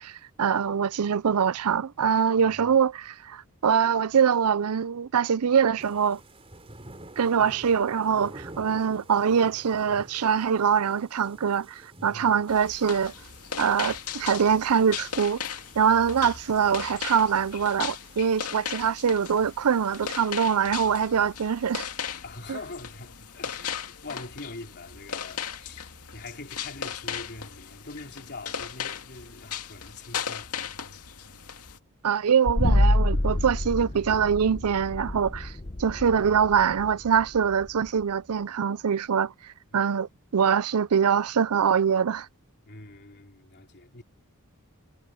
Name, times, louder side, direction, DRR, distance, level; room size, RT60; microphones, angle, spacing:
voice 1, 0.0-6.2 7.2-13.1 13.6-15.4 15.8-21.9 22.5-22.6 32.0-35.5 35.8-39.3 39.7-42.3, right 7 dB, 80° right, 0.5 m, -24 dB
sound 1, 5.8-20.2, right 1 dB, 25° right, 3.8 m, -50 dB
voice 2, 12.0-12.4 22.2-30.5 39.7-39.8 42.6-44.0, left 3 dB, 50° left, 3.4 m, -43 dB
sound 2, 12.5-31.8, left 8 dB, 80° left, 2.3 m, -37 dB
sound 3, 32.5-38.0, left 1 dB, 30° left, 0.9 m, -27 dB
head